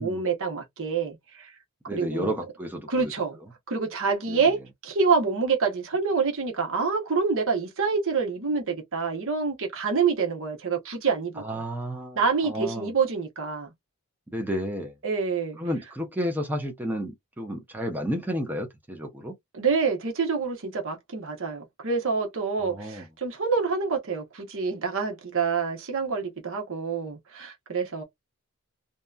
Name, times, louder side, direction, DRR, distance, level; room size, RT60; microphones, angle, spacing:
voice 1, 0.0-1.5 1.9-2.3 2.9-3.4 3.7-11.4 12.2-13.7 15.0-15.6 19.5-28.0, right 5 dB, 65° right, 0.9 m, -27 dB
voice 2, 1.9-3.1 4.3-4.4 11.4-12.9 14.3-15.0 15.6-19.4 22.6-23.1, equal, 10° right, 0.6 m, -32 dB
2.8 x 2.2 x 2.3 m
head